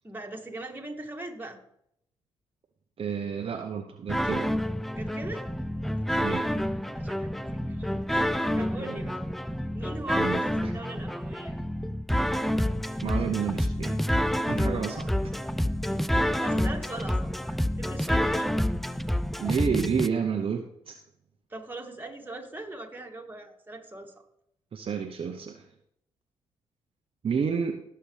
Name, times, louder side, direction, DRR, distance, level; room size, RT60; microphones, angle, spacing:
voice 1, 0.0-1.6 4.9-5.5 6.9-7.9 8.5-9.2 9.7-10.5 10.7-11.6 16.3-18.8 21.5-24.1, right 2 dB, 15° right, 1 dB, 2.4 m, -40 dB
voice 2, 3.0-4.5 6.2-6.5 8.8-9.0 10.1-10.7 13.0-14.0 14.5-15.1 19.4-21.0 24.7-25.6 27.2-27.8, right 6 dB, 50° right, 4 dB, 0.9 m, -30 dB
sound 1, 4.1-20.1, equal, ahead, 0.5 m, -28 dB
18.0 x 6.8 x 3.3 m, 0.74 s
hypercardioid pair, 50°, 12 cm